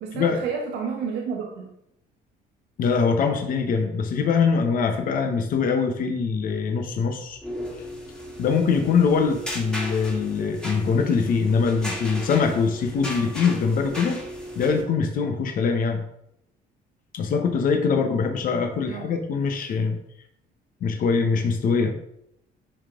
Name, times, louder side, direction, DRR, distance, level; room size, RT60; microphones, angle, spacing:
voice 1, 0.0-1.7 18.9-19.1, right 5 dB, 85° right, 0 dB, 1.2 m, -31 dB
voice 2, 2.8-7.4 8.4-14.2 14.5-16.0 17.1-20.0 20.8-21.9, left 5 dB, 55° left, 4 dB, 1.1 m, -23 dB
sound 1, 7.3-14.8, equal, 5° left, 1.7 m, -35 dB
10.5 x 3.5 x 3.7 m, 0.76 s
cardioid pair, 110°, 17 cm